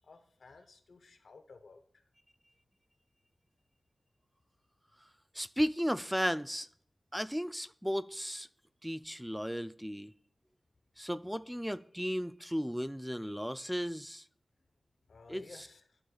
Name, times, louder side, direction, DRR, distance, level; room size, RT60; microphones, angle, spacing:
voice 1, 0.1-1.8 15.1-15.8, left 4 dB, 85° left, 0.8 m, -55 dB
voice 2, 5.3-6.7 7.1-8.5 8.8-10.1 11.0-14.2 15.3-15.7, equal, 5° right, 0.3 m, -35 dB
13.0 x 4.7 x 2.3 m
cardioid pair, 45°, 0 cm